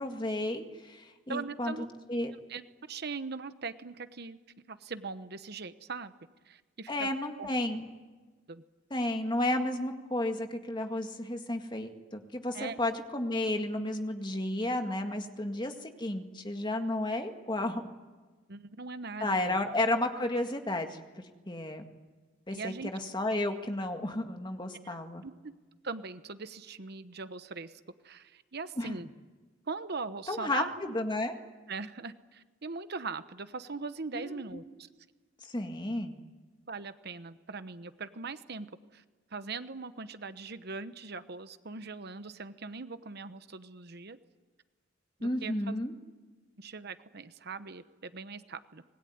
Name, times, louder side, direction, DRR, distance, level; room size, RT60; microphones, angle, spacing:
voice 1, 0.0-2.3 6.9-7.9 8.9-17.8 19.2-21.0 21.5-21.9 22.5-25.2 28.8-29.0 30.3-30.6 30.9-31.4 34.1-34.6 35.4-36.2 45.2-46.0, left 1 dB, 25° left, 5 dB, 1.9 m, -32 dB
voice 2, 1.3-1.9 2.5-4.4 4.7-6.1 6.4-7.1 7.4-7.5 8.5-8.6 12.5-12.8 18.5-19.6 22.5-22.9 24.8-25.5 25.8-29.1 29.7-30.9 31.7-34.9 36.7-39.0 39.3-44.2 45.2-45.8 46.6-48.8, right 4 dB, 55° right, 11 dB, 1.0 m, -41 dB
25.5 x 20.5 x 9.6 m, 1.3 s
head